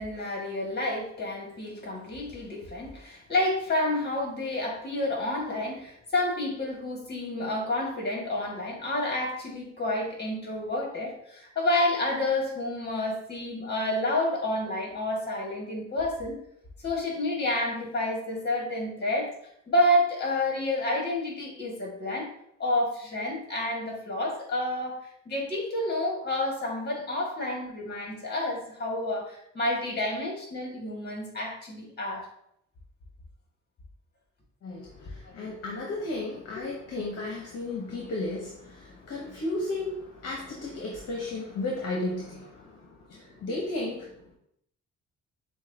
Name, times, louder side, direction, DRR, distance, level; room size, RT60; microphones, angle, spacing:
voice 1, 0.0-16.4 16.8-19.3 19.7-22.3 22.6-25.0 25.3-32.3 35.2-35.3, left 1 dB, 35° left, -1 dB, 1.7 m, -29 dB
voice 2, 34.6-44.4, left 2 dB, 55° left, -1 dB, 1.0 m, -34 dB
7.0 x 2.4 x 2.7 m, 0.72 s
cardioid pair, 90°, 30 cm